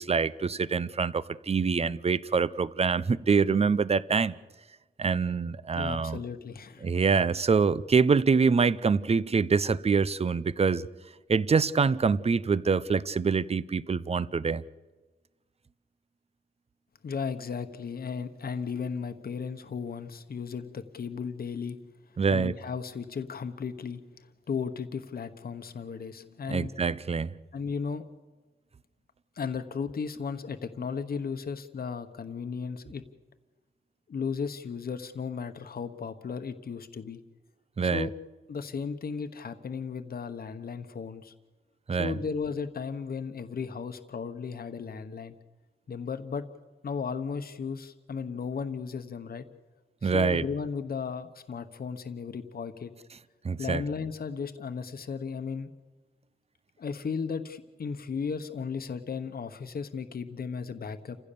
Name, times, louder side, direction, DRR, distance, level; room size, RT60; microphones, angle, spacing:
voice 1, 0.0-4.3 5.0-6.2 6.8-10.9 11.3-14.6 22.2-22.5 26.5-27.4 37.8-38.1 41.9-42.2 50.0-50.4 53.4-53.8, right 5 dB, 35° right, 0.6 m, -25 dB
voice 2, 5.7-6.9 17.0-21.8 22.3-24.0 24.5-26.7 27.5-28.1 29.4-33.0 34.1-37.2 37.8-38.1 38.5-41.3 42.0-45.3 45.9-46.4 46.8-49.4 50.0-52.9 53.6-55.7 56.8-61.2, left 5 dB, 60° left, 1.1 m, -35 dB
29.5 x 15.5 x 6.9 m
wide cardioid pair, 140°, 17 cm